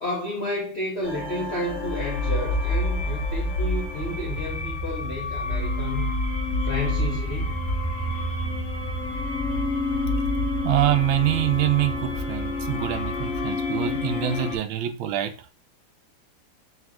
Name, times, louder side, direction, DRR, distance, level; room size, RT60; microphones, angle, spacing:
voice 1, 0.0-6.2 6.6-7.6, left 2 dB, 85° left, 0.5 m, -31 dB
sound 1, 1.0-14.6, left 1 dB, 45° left, 1.2 m, -28 dB
voice 2, 10.6-15.5, right 12 dB, 75° right, 1.2 m, -25 dB
4.1 x 2.3 x 4.6 m
omnidirectional pair, 2.4 m